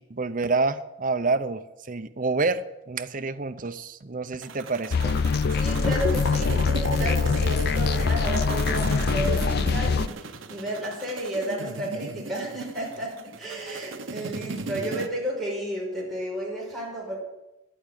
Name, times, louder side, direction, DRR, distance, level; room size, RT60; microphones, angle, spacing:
voice 1, 0.0-5.2, right 3 dB, 40° right, 10 dB, 0.6 m, -28 dB
sound 1, 4.4-15.1, right 3 dB, 65° right, 0.9 m, -36 dB
sound 2, 4.9-10.1, left 4 dB, 50° left, 0.4 m, -23 dB
voice 2, 5.5-17.2, right 1 dB, ahead, -5 dB, 5.7 m, -32 dB
11.0 x 8.7 x 9.1 m, 0.97 s
head